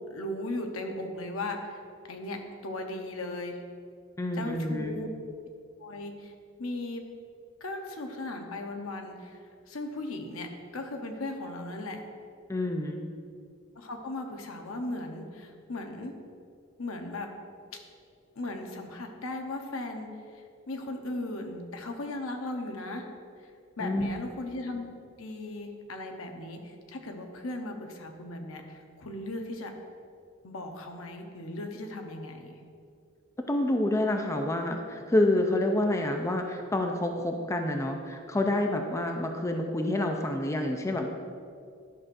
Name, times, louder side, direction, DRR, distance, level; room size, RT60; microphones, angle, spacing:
voice 1, 0.1-1.8 2.1-3.6 4.4-5.1 5.8-6.3 6.6-7.0 7.6-9.4 9.7-10.5 10.7-12.0 13.8-16.1 16.8-17.3 18.4-20.1 20.3-23.0 23.8-29.7 30.4-32.5, left 2 dB, 85° left, 4 dB, 0.8 m, -37 dB
voice 2, 4.2-5.0 12.5-13.1 23.8-24.2 33.5-41.1, left 1 dB, 15° left, 3 dB, 0.4 m, -28 dB
11.0 x 6.1 x 2.5 m, 2.3 s
head